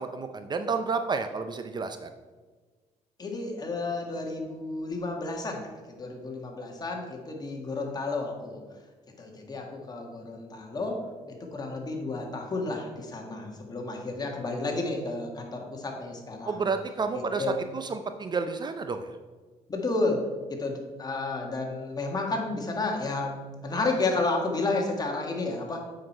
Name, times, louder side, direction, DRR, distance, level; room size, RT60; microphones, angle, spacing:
voice 1, 0.0-2.1 16.5-19.1, right 4 dB, 35° right, 8 dB, 0.5 m, -30 dB
voice 2, 3.2-8.6 9.2-11.0 11.4-16.6 17.1-17.5 19.7-20.2 20.5-25.8, left 3 dB, 30° left, 1 dB, 1.7 m, -31 dB
7.6 x 5.9 x 4.5 m, 1.4 s
cardioid pair, 100°, 13 cm